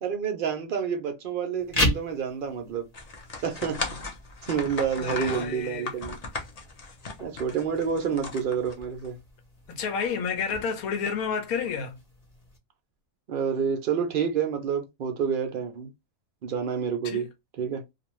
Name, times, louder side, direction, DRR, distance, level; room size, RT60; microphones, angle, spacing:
voice 1, 0.0-2.9 3.4-3.8 4.5-6.2 7.2-9.2 13.3-15.9 16.4-17.3 17.6-17.8, right 7 dB, 70° right, 0.5 m, -28 dB
sound 1, 1.6-12.6, left 1 dB, 35° left, 0.8 m, -36 dB
sound 2, 2.9-9.1, left 3 dB, 55° left, 0.4 m, -37 dB
voice 2, 5.0-5.9 9.7-12.0 17.0-17.2, left 6 dB, 90° left, 1.2 m, -30 dB
2.5 x 2.3 x 3.0 m
omnidirectional pair, 1.5 m